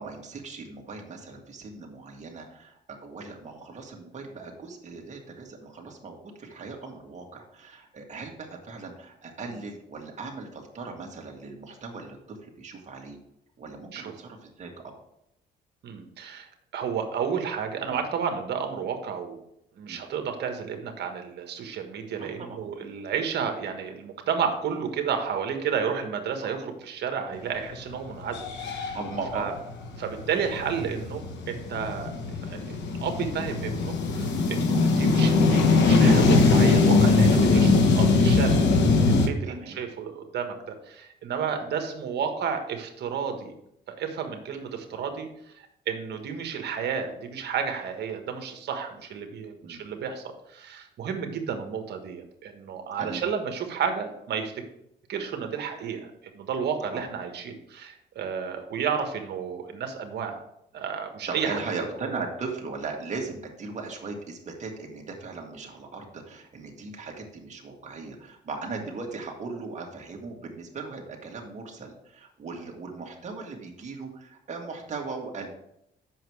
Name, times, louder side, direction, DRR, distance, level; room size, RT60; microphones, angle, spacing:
voice 1, 0.0-13.2 13.6-14.7 19.9-20.0 22.2-22.9 26.6-26.7 28.9-29.5 34.6-34.7 39.4-39.8 41.6-41.7 44.9-45.0 49.6-49.8 53.0-53.2 56.9-57.1 61.3-75.5, right 4 dB, 40° right, 0 dB, 2.0 m, -38 dB
voice 2, 15.8-16.5 16.7-19.4 19.8-29.0 29.3-29.5 30.0-32.1 32.4-43.5 43.9-50.2 50.5-54.5 55.1-60.4 60.7-62.1, right 7 dB, 70° right, 5 dB, 1.4 m, -32 dB
sound 1, 27.7-27.8 28.2-39.3, left 3 dB, 80° left, 1.0 m, -21 dB
7.7 x 6.1 x 4.7 m, 0.78 s
cardioid pair, 100°, 18 cm